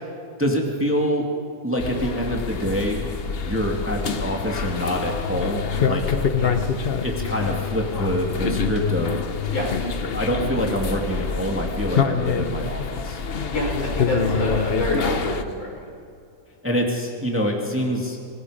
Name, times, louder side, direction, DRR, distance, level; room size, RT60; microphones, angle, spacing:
voice 1, 0.4-1.3 1.6-3.0 3.4-6.1 7.0-9.2 10.1-13.2 16.6-18.3, equal, 5° right, 0 dB, 2.2 m, -25 dB
sound 1, 1.8-15.4, left 6 dB, 50° left, 0.7 m, -26 dB
voice 2, 6.4-6.7 9.5-9.7 13.5-15.8, left 1 dB, 75° left, -3 dB, 6.8 m, -27 dB
26.5 x 20.0 x 5.1 m, 2.3 s
omnidirectional pair, 2.1 m